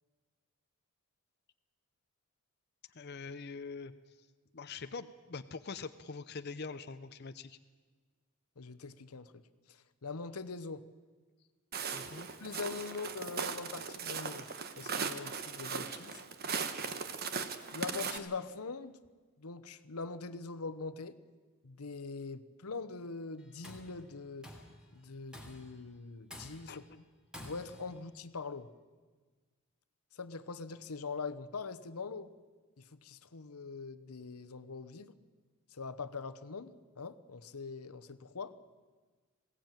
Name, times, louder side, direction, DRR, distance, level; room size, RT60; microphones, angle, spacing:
voice 1, 2.9-3.9 4.5-7.6 11.9-12.3 26.7-27.0, left 4 dB, 50° left, 9 dB, 0.7 m, -44 dB
voice 2, 8.6-9.3 9.7-10.8 12.4-16.2 17.7-19.0 19.4-21.2 21.6-24.5 24.9-26.9 27.4-28.7 30.1-32.3 32.8-35.1 35.7-38.5, left 4 dB, 90° left, 13 dB, 1.0 m, -43 dB
Walk footsteps, 11.7-18.2, right 5 dB, 45° right, 1.2 m, -38 dB
Tools, 23.4-23.9 24.4-24.8 25.3-25.8 26.3-26.8 27.3-27.9, left 1 dB, 5° right, 3.0 m, -49 dB
21.0 x 16.5 x 9.1 m, 1.4 s
head